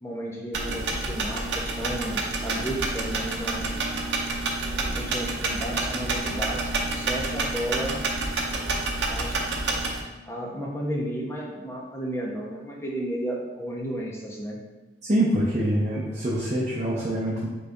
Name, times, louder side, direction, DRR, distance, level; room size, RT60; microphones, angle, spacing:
voice 1, 0.0-3.7 4.7-8.1 9.1-9.5 10.3-14.6, right 1 dB, 15° left, -2 dB, 0.7 m, -33 dB
sound 1, 0.5-10.0, right 2 dB, 90° right, 0.6 m, -28 dB
voice 2, 15.0-17.5, right 1 dB, 40° right, -6 dB, 0.7 m, -25 dB
3.9 x 3.2 x 3.5 m, 1.1 s
head